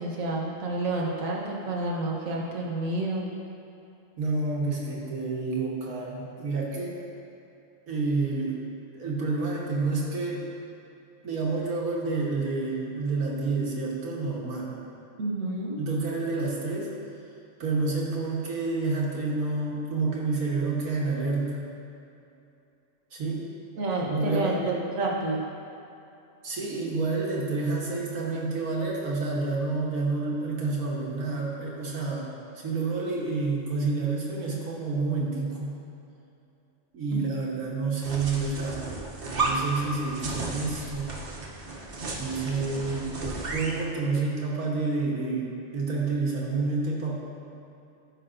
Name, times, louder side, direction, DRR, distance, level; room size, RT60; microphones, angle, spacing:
voice 1, 0.0-3.3 15.2-15.8 23.8-25.5 37.1-37.2, right 2 dB, 70° right, -2 dB, 1.5 m, -29 dB
voice 2, 4.2-7.0 7.9-8.7 8.9-10.4 11.2-14.7 15.8-16.9 17.6-21.7 23.1-23.5 24.1-24.8 26.4-32.3 32.5-35.8 36.9-38.9 39.4-41.2 42.2-43.1 43.5-47.1, right 3 dB, 90° right, -4 dB, 1.7 m, -29 dB
sound 1, 38.0-43.8, right 2 dB, 50° right, 0.9 m, -33 dB
13.0 x 5.4 x 2.6 m, 2.7 s
omnidirectional pair, 1.4 m